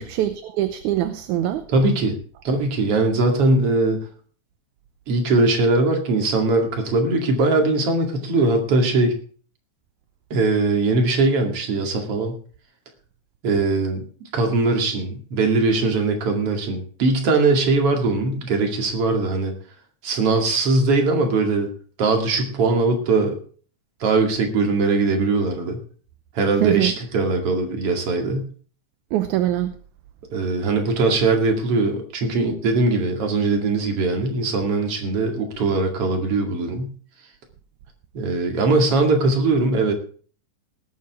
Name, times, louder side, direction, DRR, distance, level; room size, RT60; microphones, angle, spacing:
voice 1, 0.0-1.7 26.6-26.9 29.1-29.8, right 13 dB, 75° right, 10 dB, 2.1 m, -23 dB
voice 2, 1.7-2.2 2.4-4.1 5.1-9.1 10.3-12.3 13.4-14.0 14.3-19.5 20.0-21.7 22.0-23.4 24.0-25.8 26.3-28.5 30.3-36.9 38.1-39.9, right 3 dB, 50° right, 3 dB, 3.1 m, -20 dB
18.5 x 9.6 x 3.6 m, 0.43 s
omnidirectional pair, 3.6 m